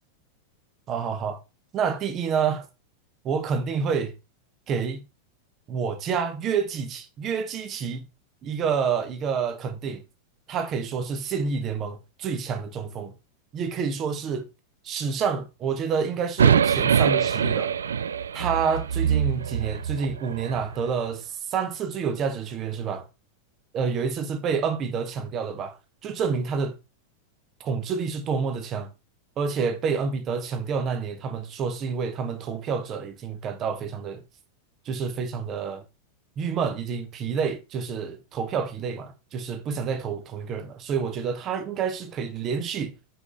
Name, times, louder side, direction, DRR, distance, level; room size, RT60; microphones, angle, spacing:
voice 1, 0.9-1.4 1.7-2.7 3.2-4.1 4.7-5.0 5.7-8.1 8.4-10.0 10.5-13.1 13.5-14.5 14.8-17.8 18.3-23.1 23.7-25.8 26.0-26.8 27.6-28.9 29.4-34.2 34.8-35.8 36.4-43.0, right 6 dB, 30° right, 1.1 m, -28 dB
sound 1, 16.4-20.6, right 7 dB, 70° right, 0.3 m, -23 dB
6.1 x 4.9 x 3.8 m
figure-of-eight pair, 90°, 0 cm